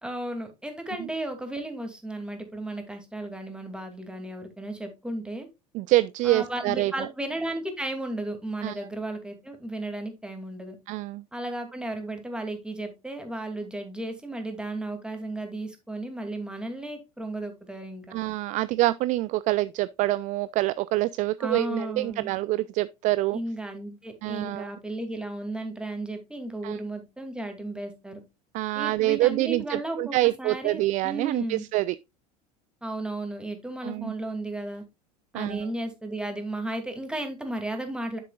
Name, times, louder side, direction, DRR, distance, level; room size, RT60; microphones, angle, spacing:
voice 1, 0.0-5.5 6.2-10.7 11.3-18.1 21.4-22.3 23.3-28.2 28.7-31.6 32.8-34.8 35.3-38.2, right 1 dB, 5° right, 2.5 m, -34 dB
voice 2, 5.7-6.9 8.6-8.8 10.9-11.2 18.1-23.4 24.2-24.7 26.6-26.8 28.5-31.9 33.8-34.1 35.3-35.7, right 18 dB, 40° right, 0.4 m, -26 dB
9.9 x 7.4 x 2.3 m
figure-of-eight pair, 75°, 20 cm